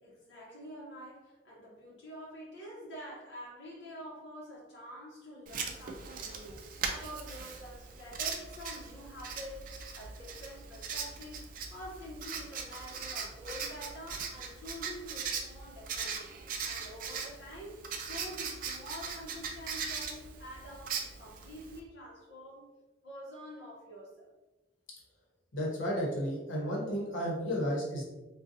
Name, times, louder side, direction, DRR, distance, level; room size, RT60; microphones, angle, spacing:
voice 1, 0.0-16.3 16.6-22.7 23.0-24.3, equal, 65° left, -6 dB, 0.8 m, -47 dB
Writing, 5.5-21.8, right 5 dB, 45° right, 0.4 m, -40 dB
voice 2, 25.5-28.0, equal, 85° left, -3 dB, 0.9 m, -32 dB
3.9 x 2.3 x 2.6 m, 1.1 s
head